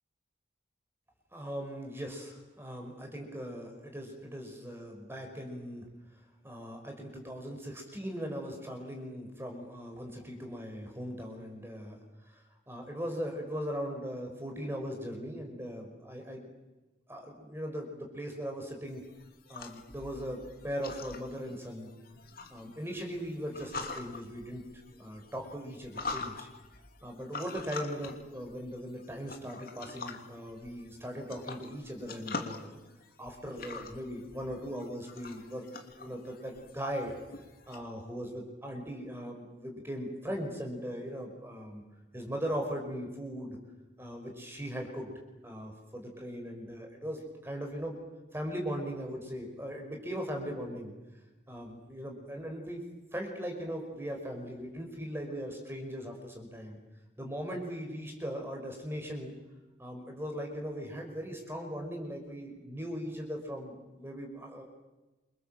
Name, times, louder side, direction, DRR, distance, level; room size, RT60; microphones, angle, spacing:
voice 1, 1.3-5.9 6.4-12.0 12.3-12.4 12.7-16.5 17.1-19.0 19.5-21.9 22.5-26.5 27.0-32.7 33.2-35.7 36.0-37.1 37.7-41.8 42.1-43.6 44.0-45.1 45.4-48.0 48.3-50.9 51.5-52.8 53.1-56.8 57.2-59.3 59.8-64.6, equal, 10° right, 2 dB, 5.3 m, -39 dB
sound 1, 18.9-37.8, left 3 dB, 50° left, 3.1 m, -45 dB
28.5 x 26.0 x 7.8 m, 1.1 s
head